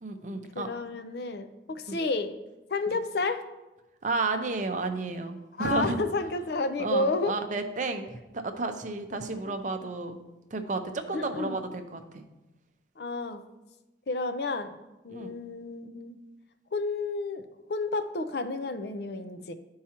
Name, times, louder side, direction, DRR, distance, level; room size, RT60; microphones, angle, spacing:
voice 1, 0.0-0.7 1.9-2.0 4.0-6.0 6.8-10.2 10.5-12.2 15.1-15.3, right 3 dB, 45° right, 7 dB, 0.5 m, -32 dB
voice 2, 0.5-2.4 2.7-3.5 5.6-7.4 9.1-9.5 11.1-11.6 13.0-13.4 14.1-14.8 15.0-16.2 16.7-17.4 17.7-19.5, left 3 dB, 60° left, 9 dB, 0.5 m, -31 dB
11.5 x 4.7 x 2.9 m, 1.0 s
head